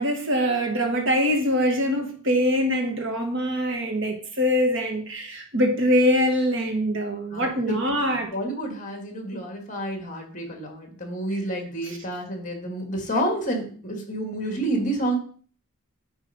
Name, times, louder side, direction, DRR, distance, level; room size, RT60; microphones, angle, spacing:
voice 1, 0.0-8.3 11.8-12.0, equal, 55° right, 3 dB, 1.5 m, -23 dB
voice 2, 7.3-7.9 8.3-15.2, right 1 dB, 35° left, 3 dB, 1.7 m, -29 dB
8.7 x 3.5 x 5.5 m, 0.43 s
head